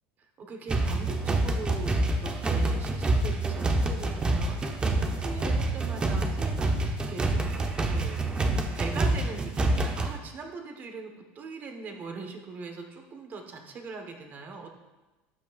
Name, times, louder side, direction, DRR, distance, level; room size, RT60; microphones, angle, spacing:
voice 1, 0.4-8.2 8.7-14.7, right 4 dB, 35° right, 4 dB, 1.2 m, -41 dB
sound 1, 0.7-10.1, right 2 dB, 15° right, 0.7 m, -27 dB
12.5 x 8.4 x 2.5 m, 1.1 s
supercardioid pair, 145°, 6 cm